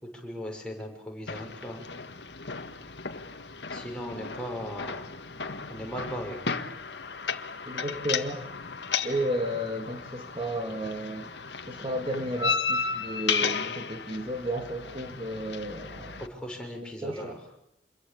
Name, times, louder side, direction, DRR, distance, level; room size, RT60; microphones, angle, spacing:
voice 1, 0.2-1.8 3.7-5.0 5.7-6.4 16.2-17.3, equal, 5° left, 0 dB, 6.4 m, -37 dB
sound 1, 1.3-16.3, left 5 dB, 90° left, 1.9 m, -34 dB
voice 2, 7.7-8.5 9.0-11.3 11.7-16.2 17.0-17.4, right 1 dB, 30° right, 3 dB, 2.3 m, -33 dB
28.0 x 22.5 x 8.6 m, 0.77 s
head